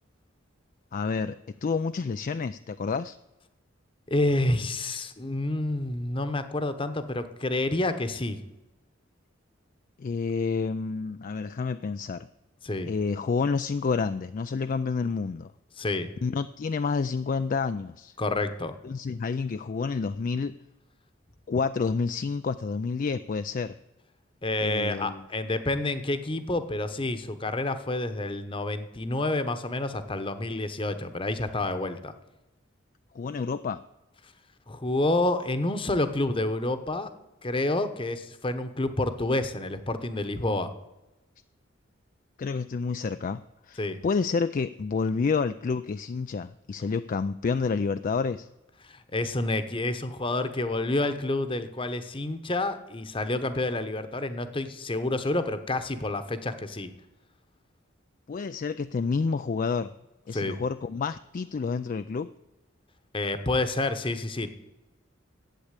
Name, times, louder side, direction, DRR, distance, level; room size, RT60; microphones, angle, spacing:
voice 1, 0.9-3.2 10.0-12.3 12.9-15.5 16.2-18.1 18.8-20.6 21.5-23.7 24.6-25.2 33.1-33.8 42.4-43.4 43.7-48.5 58.3-59.9 60.3-62.3, left 4 dB, 40° left, 11 dB, 0.3 m, -29 dB
voice 2, 4.1-8.4 12.6-12.9 15.8-16.1 18.2-18.7 24.4-32.1 34.7-37.1 37.4-40.7 43.8-44.0 48.8-56.9 60.3-60.6 63.1-64.5, left 2 dB, 25° left, 10 dB, 1.0 m, -29 dB
12.0 x 8.5 x 8.2 m, 0.99 s
head